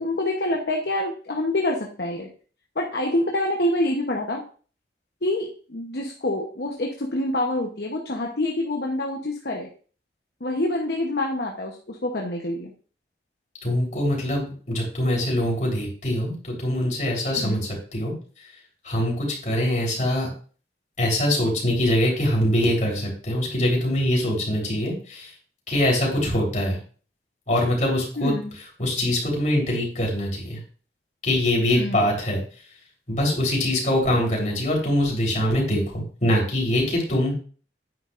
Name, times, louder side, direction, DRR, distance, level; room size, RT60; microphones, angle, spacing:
voice 1, 0.0-2.3 2.8-4.4 5.2-9.7 10.4-12.7 17.4-17.6 28.2-28.5 31.7-32.1, left 1 dB, 65° left, 0 dB, 1.0 m, -26 dB
voice 2, 13.6-18.1 18.8-20.3 21.0-25.3 25.7-26.8 27.5-28.3 28.8-30.6 31.2-32.4 33.1-37.3, left 1 dB, 45° left, -1 dB, 3.9 m, -23 dB
9.9 x 9.3 x 2.6 m, 0.41 s
head